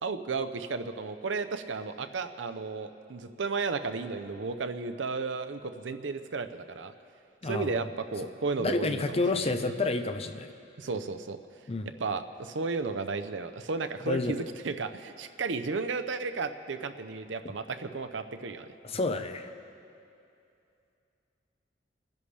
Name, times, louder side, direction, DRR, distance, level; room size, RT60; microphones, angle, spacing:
voice 1, 0.0-6.9 7.4-9.6 10.8-11.4 12.0-18.7, right 4 dB, 80° right, 9 dB, 0.6 m, -33 dB
voice 2, 7.4-7.8 8.6-10.5 11.7-11.9 14.1-14.3 18.8-19.5, left 3 dB, 35° left, 8 dB, 0.6 m, -29 dB
30.0 x 10.5 x 3.3 m, 2.6 s
head